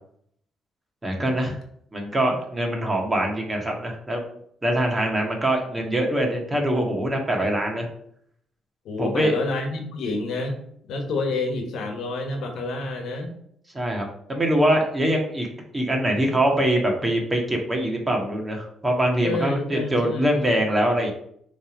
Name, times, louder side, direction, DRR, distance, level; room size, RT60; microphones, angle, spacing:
voice 1, 1.0-1.5 1.9-4.3 4.6-7.9 9.0-9.3 13.7-15.5 15.7-21.1, right 1 dB, 20° right, 1 dB, 1.7 m, -23 dB
voice 2, 8.8-10.6 10.9-13.3 19.2-20.5, left 2 dB, 75° left, 4 dB, 1.3 m, -28 dB
6.1 x 3.5 x 5.1 m, 0.68 s
cardioid pair, 90°, 0 cm